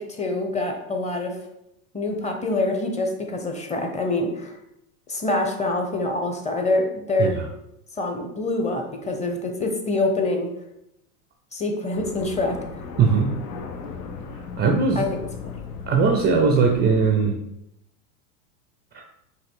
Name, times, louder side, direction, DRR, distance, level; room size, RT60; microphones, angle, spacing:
voice 1, 0.0-1.4 1.9-4.6 5.1-7.4 8.0-10.5 11.5-12.6 14.9-15.1 15.5-15.6, left 2 dB, 15° left, 3 dB, 0.7 m, -25 dB
sound 1, 11.9-17.1, left 5 dB, 80° left, 0.8 m, -36 dB
voice 2, 13.0-13.3 14.6-15.0 15.9-17.4 18.9-19.0, right 5 dB, 25° right, 3 dB, 0.4 m, -19 dB
5.4 x 2.6 x 3.7 m, 0.81 s
hypercardioid pair, 100°, 46 cm